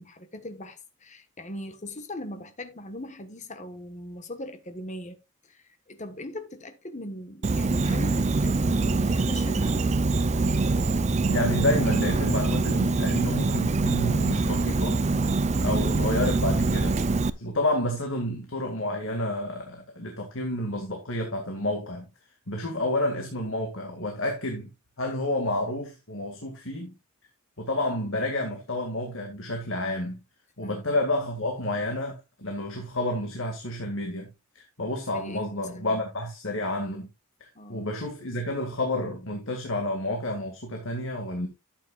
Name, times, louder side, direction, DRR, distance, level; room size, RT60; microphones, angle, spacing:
voice 1, 0.0-5.2 5.5-10.0 30.6-30.8 35.1-36.0 37.5-37.9, left 1 dB, 30° left, 1.3 m, -40 dB
Insect, 7.4-17.3, right 3 dB, 30° right, 0.5 m, -24 dB
voice 2, 11.3-15.0 15.6-17.0 17.4-22.1 22.5-24.7 25.0-26.9 27.6-30.2 30.6-37.1 37.4-41.5, left 1 dB, 60° left, 2.1 m, -30 dB
12.0 x 8.4 x 2.4 m
head